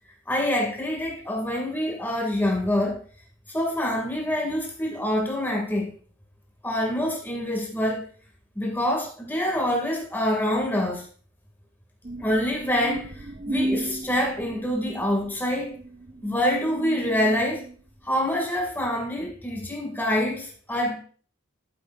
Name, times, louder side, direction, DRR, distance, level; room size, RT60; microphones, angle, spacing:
voice 1, 0.3-3.0 3.5-5.9 6.6-8.1 8.6-11.0 12.2-15.7 16.2-17.6 18.0-21.0, left 1 dB, 10° left, 2.4 m, -26 dB
sound 1, 12.0-17.8, right 1 dB, 35° right, 0.5 m, -35 dB
13.0 x 7.6 x 2.6 m
head